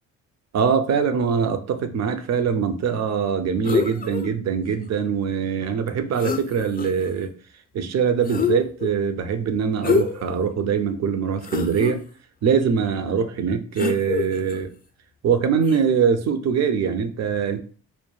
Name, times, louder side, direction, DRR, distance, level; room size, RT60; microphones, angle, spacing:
voice 1, 0.5-7.3 7.7-12.0 12.4-14.7 15.2-17.6, right 6 dB, 45° right, 9 dB, 0.5 m, -23 dB
sound 1, 3.6-4.3 5.9-6.0 6.1-7.1 8.2-8.9 9.8-10.3 10.8-10.9 11.4-11.9 13.8-14.6 15.6-15.8, left 6 dB, 25° left, 0.4 m, -25 dB
2.1 x 2.1 x 3.1 m, 0.40 s
supercardioid pair, 60°, 37 cm